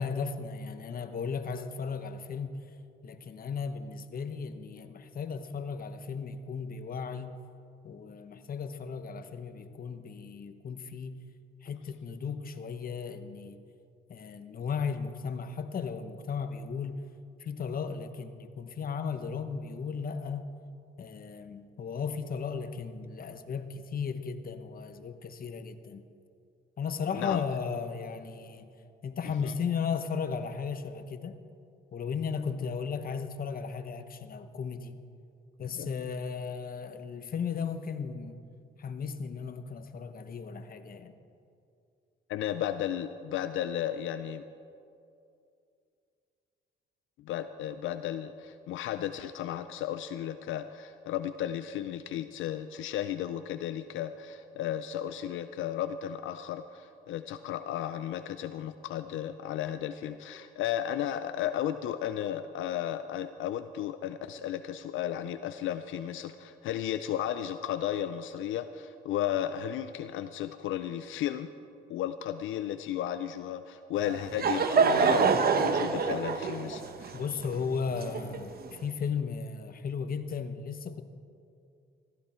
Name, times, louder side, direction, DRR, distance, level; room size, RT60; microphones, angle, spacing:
voice 1, 0.0-2.6 3.0-7.4 7.8-11.2 11.6-13.6 14.1-17.0 17.4-20.5 21.0-26.0 26.8-28.7 29.0-31.4 31.9-35.0 35.6-38.4 38.8-41.1 77.1-81.0, left 6 dB, 45° left, 9 dB, 1.0 m, -35 dB
voice 2, 27.1-27.4 29.4-29.5 35.7-35.9 42.3-44.4 47.2-71.5 71.9-77.2, left 11 dB, 80° left, 10 dB, 0.5 m, -34 dB
Laughter / Crowd, 74.0-78.7, right 5 dB, 50° right, 1.0 m, -26 dB
15.5 x 14.0 x 4.4 m, 2.5 s
cardioid pair, 90°, 20 cm